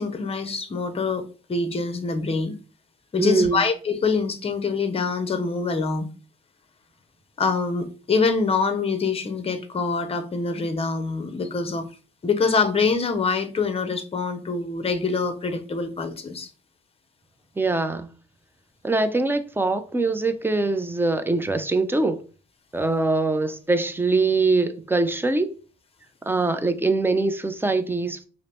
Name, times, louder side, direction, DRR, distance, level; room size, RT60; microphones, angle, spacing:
voice 1, 0.0-2.6 3.1-6.1 7.4-11.9 12.2-16.5, left 4 dB, 30° left, 0.6 m, -25 dB
voice 2, 3.2-3.6 17.6-18.1 18.8-22.2 22.7-25.5 26.2-28.3, right 3 dB, 10° right, 0.4 m, -23 dB
4.9 x 2.0 x 2.9 m
cardioid pair, 90°, 20 cm